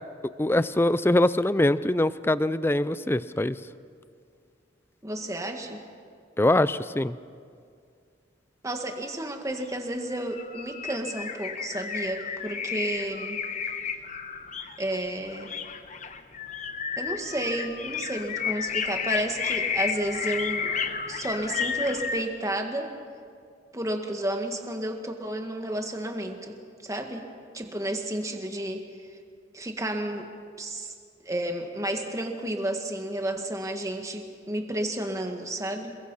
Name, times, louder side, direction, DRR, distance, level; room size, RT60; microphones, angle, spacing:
voice 1, 0.4-3.6 6.4-7.2, left 1 dB, 10° left, 15 dB, 0.5 m, -23 dB
voice 2, 5.0-5.8 8.6-13.4 14.8-15.5 17.0-20.7 21.1-22.9 23.7-26.5 26.8-27.3 27.5-28.8 29.5-30.3 30.6-30.9 31.2-35.9, right 1 dB, 15° right, 4 dB, 1.8 m, -31 dB
sound 1, 9.7-9.8 10.1-22.2, left 6 dB, 40° left, 1.1 m, -32 dB
28.0 x 22.0 x 5.7 m, 2.2 s
head